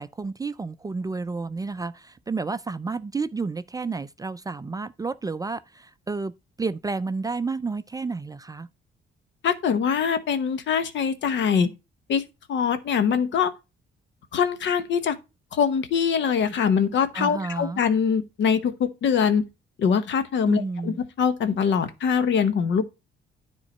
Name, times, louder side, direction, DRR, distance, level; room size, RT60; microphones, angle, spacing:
voice 1, 0.0-8.7 17.1-17.8 20.5-21.0, right 4 dB, 20° right, 0.4 m, -31 dB
voice 2, 9.4-11.7 12.1-12.2 12.5-13.5 14.3-15.1 15.5-19.5 19.8-22.8, left 7 dB, 65° left, 1.0 m, -23 dB
9.8 x 3.8 x 4.2 m
cardioid pair, 90°, 20 cm